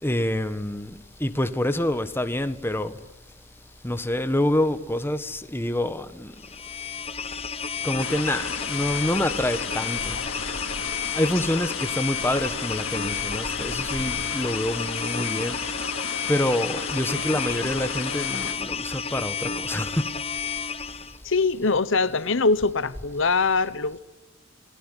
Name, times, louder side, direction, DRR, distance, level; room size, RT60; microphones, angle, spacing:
voice 1, 0.0-3.1 3.8-6.4 7.8-10.2 11.1-15.7 16.3-20.2, left 1 dB, 10° left, 1.3 m, -27 dB
sound 1, 6.4-21.2, left 6 dB, 30° left, 1.0 m, -31 dB
sound 2, 8.0-18.5, left 6 dB, 85° left, 3.1 m, -34 dB
voice 2, 21.2-24.0, left 4 dB, 65° left, 1.1 m, -23 dB
29.0 x 20.0 x 9.9 m
head